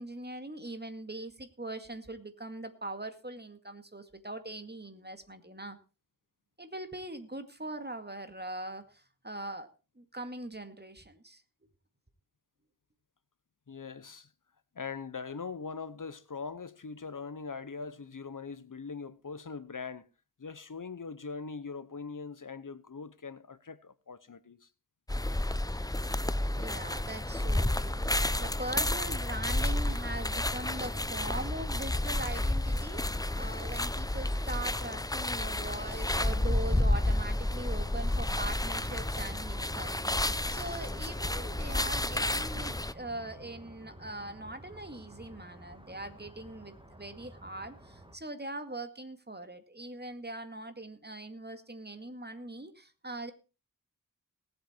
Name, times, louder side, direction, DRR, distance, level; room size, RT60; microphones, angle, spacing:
voice 1, 0.0-5.8 6.6-9.7 10.0-11.4 26.6-53.3, right 2 dB, 30° right, 2.2 m, -41 dB
voice 2, 13.7-14.3 14.7-20.1 20.4-24.7, left 5 dB, 70° left, 1.0 m, -41 dB
sound 1, 25.1-42.9, left 1 dB, 10° left, 0.7 m, -31 dB
sound 2, 36.1-48.2, right 1 dB, 15° right, 2.5 m, -50 dB
19.0 x 8.0 x 4.5 m
wide cardioid pair, 40°, 33 cm